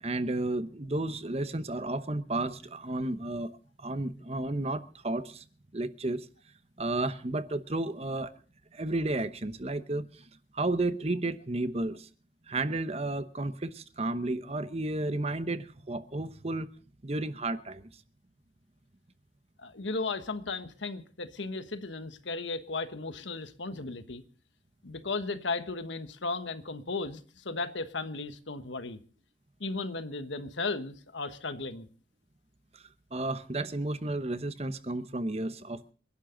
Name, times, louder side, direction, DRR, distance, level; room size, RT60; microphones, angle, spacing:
voice 1, 0.0-5.4 5.7-6.3 6.8-8.3 8.7-12.1 12.5-16.7 17.0-17.9 32.7-35.9, right 2 dB, 35° right, 0.9 m, -32 dB
voice 2, 19.6-24.2 24.8-29.0 29.6-31.9, left 3 dB, 85° left, 1.3 m, -35 dB
28.0 x 11.5 x 3.9 m
head